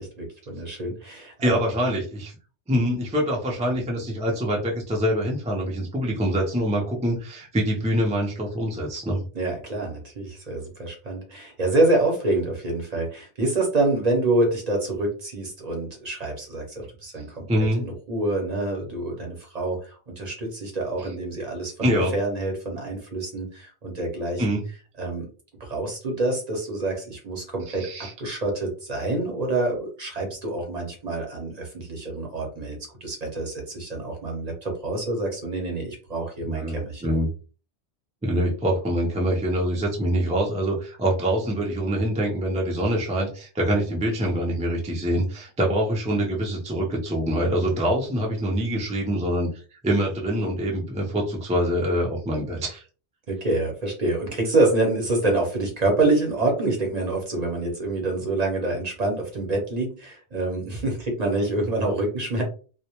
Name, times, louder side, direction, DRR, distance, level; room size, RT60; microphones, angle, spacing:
voice 1, 0.0-1.6 9.3-17.5 17.8-24.4 25.0-25.3 25.6-27.9 28.2-37.0 53.3-62.4, right 2 dB, 45° right, 0 dB, 0.7 m, -26 dB
voice 2, 1.4-2.3 2.7-9.2 17.5-17.8 21.8-22.1 24.4-24.7 27.7-28.1 36.4-37.3 38.2-52.8, equal, 10° right, -2 dB, 0.3 m, -25 dB
2.1 x 2.1 x 2.9 m, 0.37 s
omnidirectional pair, 1.1 m